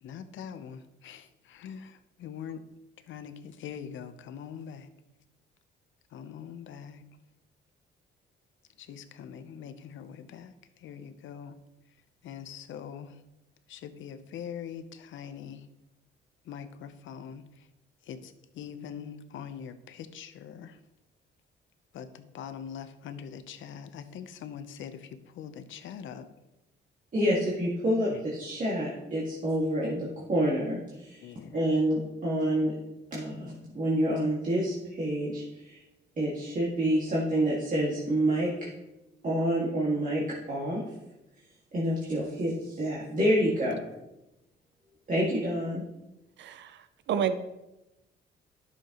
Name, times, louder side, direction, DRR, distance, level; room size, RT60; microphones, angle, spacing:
voice 1, 0.0-2.7 3.1-4.9 6.1-7.0 8.8-11.6 12.2-13.2 13.7-15.7 16.4-17.7 18.0-20.8 21.9-26.3 28.1-28.2 31.2-31.7, left 8 dB, 75° left, 10 dB, 0.8 m, -43 dB
voice 2, 27.1-32.7 33.1-35.8 36.2-38.7 39.2-40.2 40.5-40.8 41.7-43.8 45.1-45.8, right 1 dB, 40° right, -5 dB, 2.0 m, -28 dB
voice 3, 46.4-47.3, right 8 dB, 65° right, 11 dB, 0.6 m, -30 dB
11.0 x 6.6 x 3.0 m, 0.94 s
cardioid pair, 90°, 20 cm